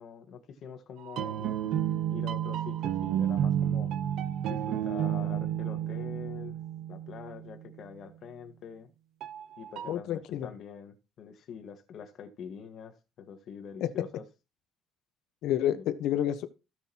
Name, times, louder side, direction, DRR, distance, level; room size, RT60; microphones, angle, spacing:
voice 1, 0.0-1.8 2.1-3.9 4.5-6.6 6.9-8.9 9.6-14.2 15.7-15.9, left 7 dB, 50° left, 1.5 m, -45 dB
sound 1, 1.0-7.7 9.2-9.9, right 10 dB, 65° right, 0.7 m, -31 dB
voice 2, 9.9-10.5 13.8-13.9 15.4-16.5, left 11 dB, 70° left, 1.0 m, -29 dB
16.5 x 6.2 x 2.9 m
cardioid pair, 170°, 0 cm